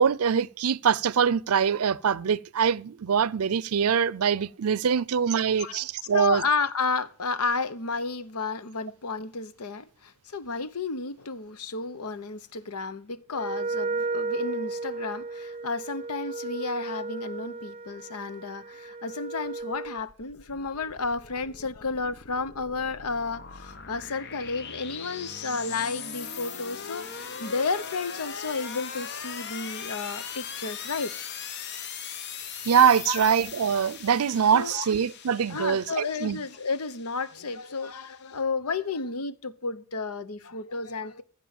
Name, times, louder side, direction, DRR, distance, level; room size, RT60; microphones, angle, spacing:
voice 1, 0.0-6.4 32.6-36.4, right 7 dB, 80° right, 0.5 m, -23 dB
voice 2, 6.1-31.1 33.1-33.3 34.5-34.9 35.5-41.2, left 4 dB, 90° left, 0.9 m, -32 dB
Wind instrument woodwind instrument, 13.3-20.0, right 3 dB, 25° right, 0.7 m, -34 dB
sound 1, 19.6-38.3, left 7 dB, 50° left, 1.0 m, -40 dB
15.5 x 5.4 x 7.2 m
head